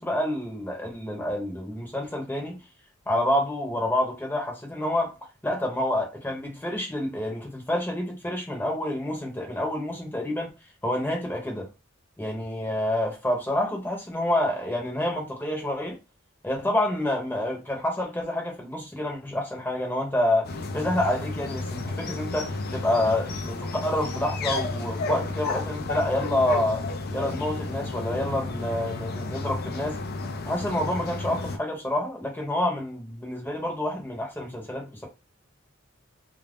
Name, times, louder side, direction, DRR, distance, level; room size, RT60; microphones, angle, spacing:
voice 1, 0.0-2.6 3.1-5.1 5.4-10.5 10.8-11.7 12.2-16.0 16.4-20.5 20.7-26.8 27.1-30.0 30.5-35.1, left 1 dB, 10° left, 0.9 m, -28 dB
sound 1, 20.4-31.6, left 3 dB, 50° left, 0.4 m, -32 dB
2.5 x 2.0 x 3.4 m
head